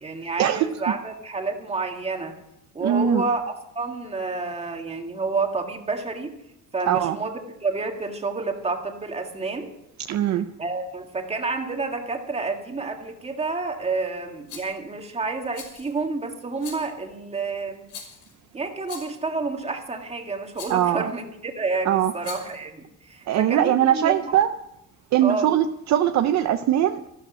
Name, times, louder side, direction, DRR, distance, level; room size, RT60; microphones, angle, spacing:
voice 1, 0.0-2.4 2.7-6.4 6.7-7.3 7.6-9.7 10.6-17.8 18.5-24.3 25.2-25.5, right 3 dB, 20° right, 3 dB, 1.8 m, -29 dB
voice 2, 2.8-3.2 6.9-7.2 10.1-10.5 20.7-21.1 21.9-22.1 23.3-24.5 25.1-27.1, right 11 dB, 50° right, 8 dB, 0.7 m, -21 dB
Rattle, 14.5-14.8 15.5-16.0 16.6-17.0 17.9-18.3 18.8-19.3 20.5-20.9 22.1-22.6, left 6 dB, 80° left, 5.7 m, -41 dB
13.5 x 12.5 x 6.2 m, 0.83 s
cardioid pair, 155°, 34 cm